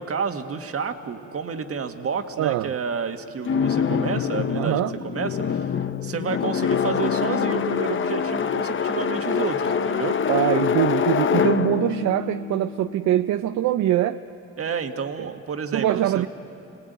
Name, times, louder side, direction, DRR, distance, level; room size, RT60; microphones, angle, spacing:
voice 1, 0.0-5.7 6.0-10.2 14.6-16.3, right 6 dB, 50° right, 6 dB, 1.6 m, -30 dB
voice 2, 2.4-2.7 4.6-5.0 10.3-14.2 15.2-15.3 15.7-16.3, right 13 dB, 70° right, 10 dB, 0.6 m, -23 dB
sound 1, 3.4-13.4, left 7 dB, 40° left, 0.7 m, -25 dB
27.5 x 18.5 x 9.3 m, 2.9 s
cardioid pair, 90°, 30 cm